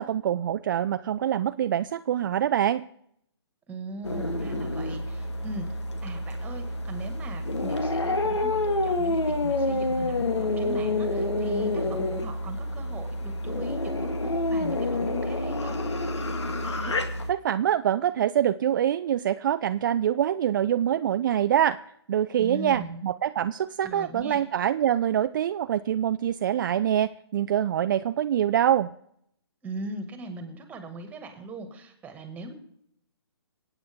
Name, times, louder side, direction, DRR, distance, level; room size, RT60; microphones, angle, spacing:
voice 1, 0.0-2.8 17.3-21.8 22.1-28.9, right 10 dB, 45° right, 11 dB, 0.4 m, -25 dB
voice 2, 3.7-5.7 6.0-15.8 22.4-23.0 23.8-24.4 29.6-32.5, right 2 dB, 10° right, 6 dB, 2.0 m, -40 dB
sound 1, 4.0-17.3, left 2 dB, 80° left, 1.9 m, -28 dB
26.5 x 8.9 x 3.7 m, 0.71 s
figure-of-eight pair, 140°, 14 cm